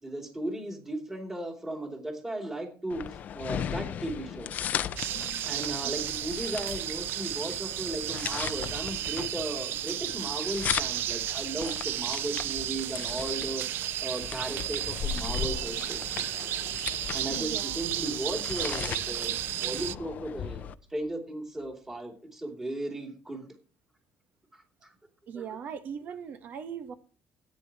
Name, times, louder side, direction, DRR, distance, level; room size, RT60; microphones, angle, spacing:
voice 1, 0.0-4.8 5.5-16.3 17.1-23.5 24.5-24.9 25.3-25.4, right 1 dB, 10° right, 2.8 m, -36 dB
sound 1, 2.9-20.7, left 9 dB, 40° left, 0.7 m, -37 dB
sound 2, 5.0-19.9, right 13 dB, 60° right, 0.5 m, -33 dB
voice 2, 17.2-17.8 19.3-19.4 25.3-26.9, right 7 dB, 45° right, 1.3 m, -40 dB
16.5 x 9.6 x 2.9 m
cardioid pair, 165°, 4 cm